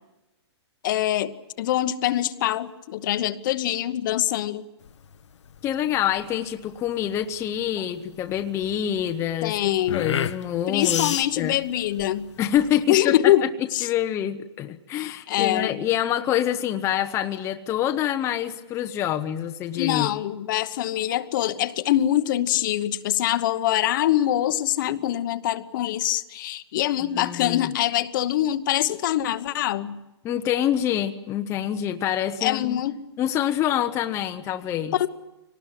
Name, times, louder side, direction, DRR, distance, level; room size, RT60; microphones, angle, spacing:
voice 1, 0.8-4.6 9.4-10.0 10.7-12.3 12.9-13.9 14.9-15.8 19.8-30.0 32.4-32.9 34.9-35.1, left 13 dB, 45° left, 12 dB, 1.0 m, -24 dB
sound 1, 4.8-12.8, left 8 dB, 80° left, 1.0 m, -33 dB
voice 2, 5.6-11.6 12.4-13.5 13.8-20.1 27.1-27.7 30.2-32.8 33.2-34.9, left 11 dB, 20° left, 6 dB, 0.8 m, -26 dB
24.5 x 19.0 x 9.9 m, 1.0 s
hypercardioid pair, 155°, 15 cm